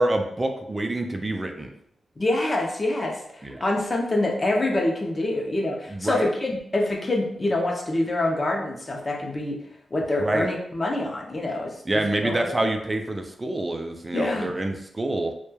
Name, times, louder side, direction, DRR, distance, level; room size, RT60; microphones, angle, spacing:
voice 1, 0.0-1.7 3.4-3.6 5.9-6.3 10.2-10.5 11.9-15.3, right 1 dB, 25° right, 4 dB, 0.3 m, -26 dB
voice 2, 2.2-9.6 9.9-12.5 14.1-14.5, left 2 dB, 30° left, 0 dB, 0.5 m, -26 dB
3.0 x 2.2 x 2.2 m, 0.74 s
cardioid pair, 95°, 0 cm